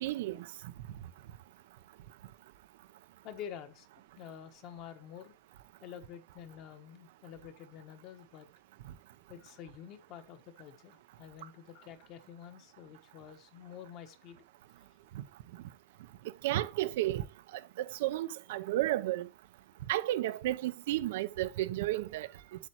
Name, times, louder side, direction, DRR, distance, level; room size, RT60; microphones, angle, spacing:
voice 1, 0.0-0.5 15.1-15.2 16.4-17.2 17.8-19.3 19.9-22.3, right 15 dB, 70° right, 0.6 m, -32 dB
voice 2, 3.2-3.9 4.2-5.3 5.8-8.5 9.3-14.4, left 9 dB, 40° left, 1.3 m, -48 dB
8.2 x 7.5 x 3.0 m
supercardioid pair, 165°, 0 cm